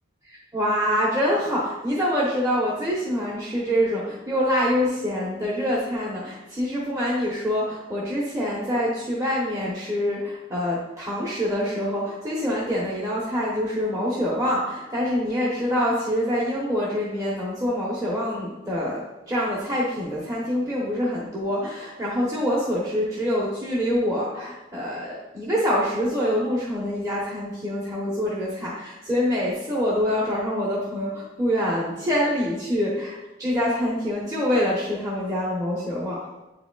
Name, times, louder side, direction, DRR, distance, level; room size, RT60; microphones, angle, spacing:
voice 1, 0.3-36.2, equal, 20° right, -6 dB, 0.9 m, -25 dB
8.7 x 4.8 x 2.3 m, 1.0 s
head